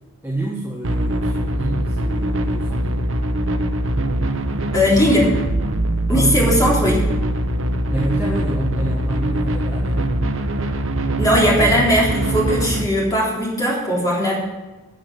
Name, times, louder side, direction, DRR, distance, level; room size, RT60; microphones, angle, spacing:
voice 1, 0.2-2.9 6.1-6.8 7.9-10.0, right 2 dB, 10° right, -4 dB, 1.4 m, -27 dB
sound 1, 0.8-12.8, right 1 dB, 60° right, 1.0 m, -22 dB
voice 2, 4.5-5.3 6.1-7.0 11.2-14.4, equal, 15° left, -4 dB, 3.6 m, -18 dB
13.0 x 7.6 x 6.1 m, 1.2 s
head